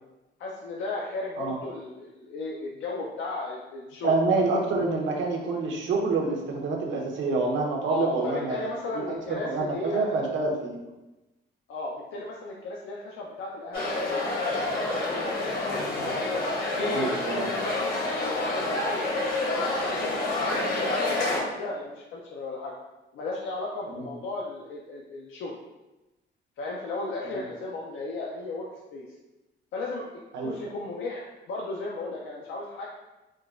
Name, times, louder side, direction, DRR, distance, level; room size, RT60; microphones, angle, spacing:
voice 1, 0.4-4.1 7.8-10.3 11.7-15.7 16.7-17.8 18.1-22.7 23.1-25.6 26.6-29.1 29.7-30.0 30.4-32.9, left 2 dB, 75° left, -2 dB, 0.5 m, -35 dB
voice 2, 4.0-10.8 16.9-17.5 24.0-24.1 30.3-30.5, right 3 dB, 70° right, -1 dB, 0.7 m, -27 dB
sound 1, 13.7-21.4, left 2 dB, 50° left, 0.9 m, -28 dB
3.6 x 2.3 x 2.4 m, 1.0 s
cardioid pair, 90°, 20 cm